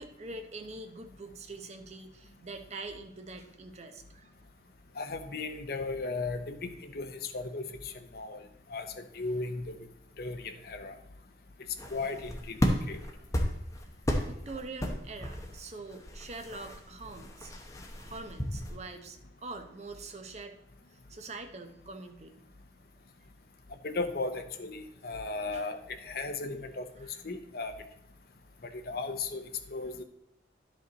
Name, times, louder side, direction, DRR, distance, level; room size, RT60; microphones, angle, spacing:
voice 1, 0.0-4.3 14.2-17.6 18.0-20.6 20.9-22.3 25.5-25.7 27.0-27.2, right 3 dB, 40° right, 6 dB, 0.7 m, -44 dB
voice 2, 5.0-8.4 8.7-9.8 10.2-11.0 11.9-12.6 12.9-13.0 23.8-27.7 28.6-29.4 29.7-30.0, left 3 dB, 55° left, 7 dB, 0.8 m, -36 dB
sound 1, 11.8-18.8, equal, 15° left, 0.8 m, -34 dB
11.0 x 5.3 x 4.0 m, 0.77 s
head